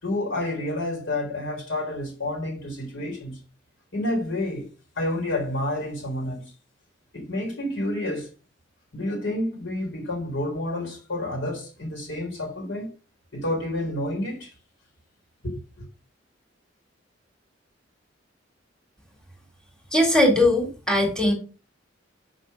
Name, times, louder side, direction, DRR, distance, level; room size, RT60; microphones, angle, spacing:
voice 1, 0.0-3.4 3.9-4.7 5.0-6.5 7.1-8.3 8.9-12.9 13.3-14.5 15.4-15.9, left 1 dB, 85° left, 3.9 m, -29 dB
voice 2, 19.9-21.3, left 1 dB, 5° left, 2.2 m, -20 dB
6.4 x 4.9 x 5.3 m
head